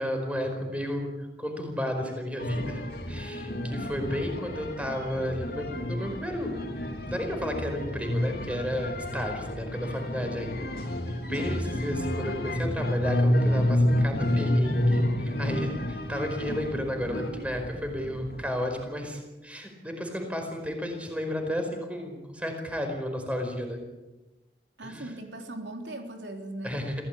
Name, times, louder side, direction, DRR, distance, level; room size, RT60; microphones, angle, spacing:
voice 1, 0.0-2.8 3.1-6.5 6.8-10.7 11.1-23.8 24.8-25.1 26.6-26.9, equal, 10° right, 4 dB, 4.7 m, -33 dB
sound 1, 2.4-18.5, left 1 dB, 55° left, 3.3 m, -29 dB
voice 2, 24.8-26.8, right 1 dB, 85° right, 3 dB, 3.6 m, -39 dB
26.5 x 17.0 x 8.5 m, 1.1 s
head